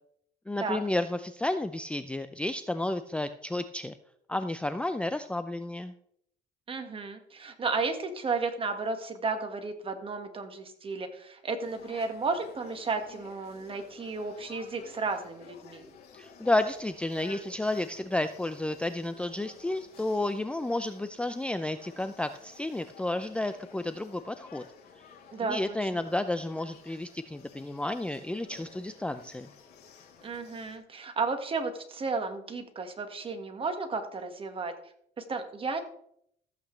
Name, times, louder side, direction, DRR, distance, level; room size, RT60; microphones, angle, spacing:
voice 1, 0.5-3.9 4.3-5.9 16.1-24.6 25.4-29.5, left 2 dB, 5° left, 10 dB, 0.5 m, -31 dB
voice 2, 6.7-15.9 25.3-26.0 30.2-34.7 35.2-35.8, right 4 dB, 30° right, 6 dB, 1.7 m, -33 dB
sound 1, 11.6-30.8, left 6 dB, 70° left, 3.0 m, -53 dB
14.5 x 8.3 x 3.3 m, 0.68 s
cardioid pair, 110°, 17 cm